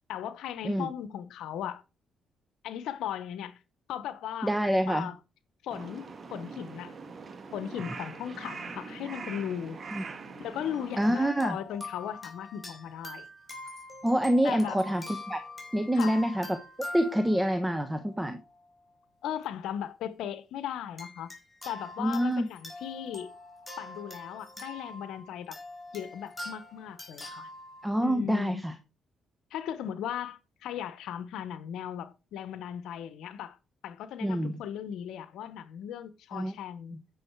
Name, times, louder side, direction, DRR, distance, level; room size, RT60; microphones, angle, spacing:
voice 1, 0.1-1.8 2.6-3.6 3.9-4.5 4.9-5.2 5.6-6.0 6.3-6.9 7.5-9.8 10.4-13.3 14.4-14.8 15.9-16.2 19.2-21.3 21.6-23.3 23.8-25.6 25.9-27.5 28.0-28.6 29.5-33.6 33.8-37.0, left 9 dB, 85° left, 1.0 m, -37 dB
voice 2, 4.4-5.1 9.9-10.0 11.0-11.6 14.0-15.4 15.7-18.4 22.0-22.5 27.8-28.7 34.2-34.6 36.3-36.5, equal, 10° right, 1.0 m, -27 dB
Crow, 5.7-11.2, right 4 dB, 45° right, 1.9 m, -42 dB
sound 1, 10.7-18.6 19.3-19.4 21.0-27.9, left 2 dB, 15° left, 4.4 m, -44 dB
9.8 x 6.5 x 4.6 m
cardioid pair, 90°, 0 cm